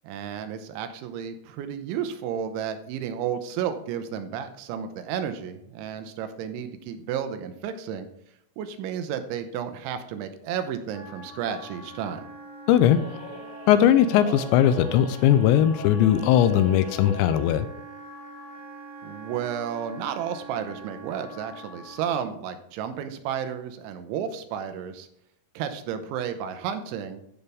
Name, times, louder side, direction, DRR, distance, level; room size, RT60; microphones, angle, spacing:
voice 1, 0.0-8.1 8.6-12.2 19.0-25.1 25.6-27.2, right 8 dB, 85° right, 8 dB, 3.2 m, -32 dB
Wind instrument woodwind instrument, 10.9-22.2, right 2 dB, 10° right, 0.9 m, -44 dB
voice 2, 12.7-13.0 13.7-17.7, left 10 dB, 85° left, 12 dB, 2.7 m, -19 dB
sound 1, 12.9-17.6, left 2 dB, 60° left, 3.1 m, -40 dB
13.5 x 5.6 x 3.5 m, 0.76 s
omnidirectional pair, 5.3 m